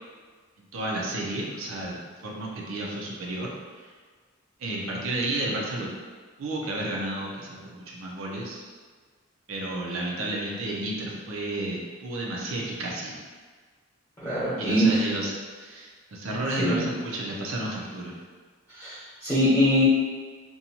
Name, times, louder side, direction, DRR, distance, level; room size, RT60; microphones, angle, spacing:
voice 1, 0.6-3.5 3.8-3.9 4.6-5.9 6.4-8.6 9.5-13.2 14.6-18.2, right 1 dB, 75° right, -2 dB, 0.5 m, -32 dB
voice 2, 14.2-15.0 16.6-16.9 18.8-19.8, equal, 15° left, -14 dB, 0.9 m, -23 dB
2.6 x 2.2 x 2.8 m, 1.5 s
head